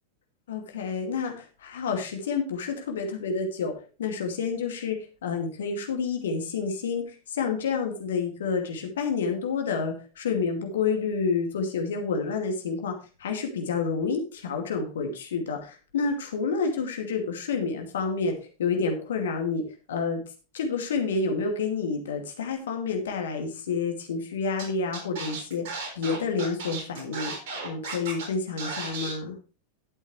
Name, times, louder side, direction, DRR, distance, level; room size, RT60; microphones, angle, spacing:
voice 1, 0.5-3.7 4.0-12.9 13.2-19.6 19.9-20.2 20.5-25.6 26.0-27.3 27.6-29.4, left 5 dB, 60° left, 3 dB, 2.4 m, -29 dB
Scratching (performance technique), 24.6-24.7 24.9-28.3 28.6-29.1, right 4 dB, 50° right, 4.0 m, -35 dB
12.0 x 8.1 x 3.3 m, 0.35 s
figure-of-eight pair, 90°, 0 cm